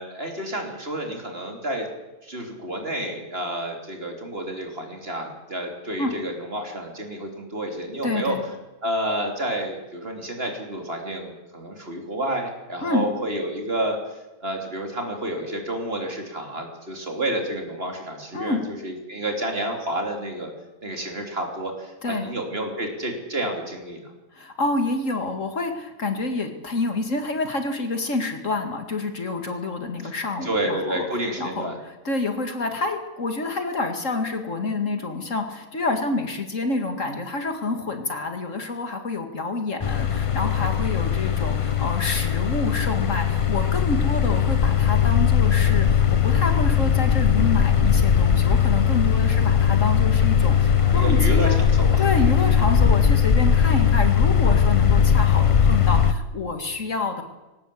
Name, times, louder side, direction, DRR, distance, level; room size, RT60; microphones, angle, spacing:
voice 1, 0.0-1.9 2.2-8.4 8.8-20.5 20.8-24.0 30.4-31.8 50.8-52.0, right 1 dB, 40° right, 2 dB, 3.5 m, -30 dB
voice 2, 8.0-8.4 12.8-13.1 18.3-18.7 22.0-22.3 24.3-31.1 31.4-31.7 32.0-51.6 52.0-57.2, left 3 dB, 60° left, 6 dB, 2.5 m, -28 dB
sound 1, 39.8-56.1, left 8 dB, 30° left, 0.7 m, -19 dB
19.5 x 18.0 x 8.4 m, 1.1 s
omnidirectional pair, 1.5 m